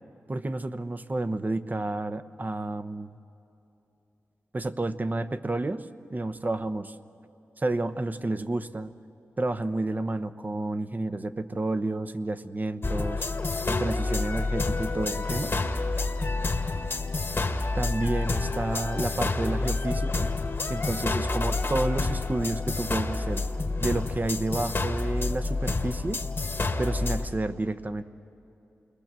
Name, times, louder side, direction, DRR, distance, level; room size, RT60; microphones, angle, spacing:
voice 1, 0.3-3.2 4.5-5.9 6.1-7.0 7.6-8.9 9.4-13.2 13.7-15.6 17.7-20.3 20.7-23.4 23.8-26.2 26.8-28.0, right 2 dB, 35° right, 11 dB, 1.0 m, -30 dB
sound 1, 12.8-27.3, left 3 dB, 50° left, 1.6 m, -28 dB
29.0 x 21.5 x 7.6 m, 2.8 s
cardioid pair, 50°, 5 cm